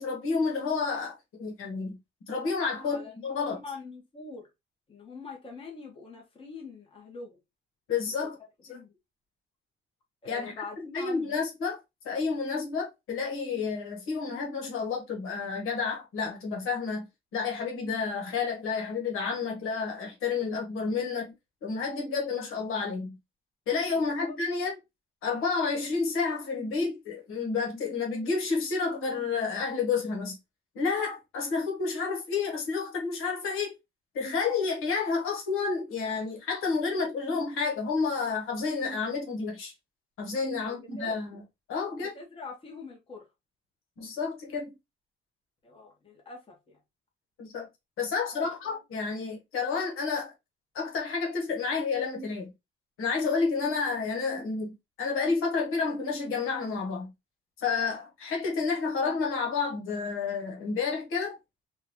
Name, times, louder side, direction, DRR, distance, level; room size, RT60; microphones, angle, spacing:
voice 1, 0.0-2.0 2.3-3.6 7.9-8.4 8.7-8.8 10.2-10.5 10.9-11.8 12.0-21.3 21.6-23.2 23.7-24.7 25.2-30.4 30.7-33.7 34.1-39.7 40.2-41.4 41.7-42.1 44.0-44.7 47.4-47.7 48.0-50.3 50.7-52.5 53.0-57.1 57.6-61.4, left 4 dB, 80° left, 1.3 m, -30 dB
voice 2, 2.8-4.5 4.9-7.4 8.2-8.3 8.7-9.0 10.2-11.4 23.9-24.4 40.6-41.1 42.0-43.3 45.6-46.8 48.3-48.8, left 4 dB, 25° left, 1.1 m, -44 dB
3.8 x 2.4 x 3.0 m
cardioid pair, 160°, 21 cm